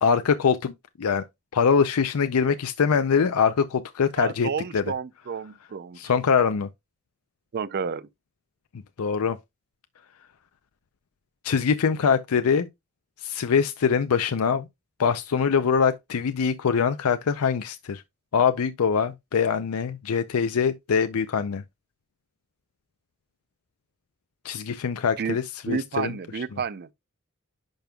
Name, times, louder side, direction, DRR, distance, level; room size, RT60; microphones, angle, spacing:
voice 1, 0.0-0.7 1.0-1.2 1.5-4.8 6.0-6.7 9.0-9.4 11.4-12.7 13.2-14.7 15.0-18.0 18.3-21.6 24.4-26.4, left 6 dB, 80° left, 0.5 m, -23 dB
voice 2, 4.2-6.0 7.5-8.1 25.2-25.4 25.7-26.9, right 6 dB, 50° right, 0.5 m, -30 dB
10.5 x 5.2 x 2.3 m
head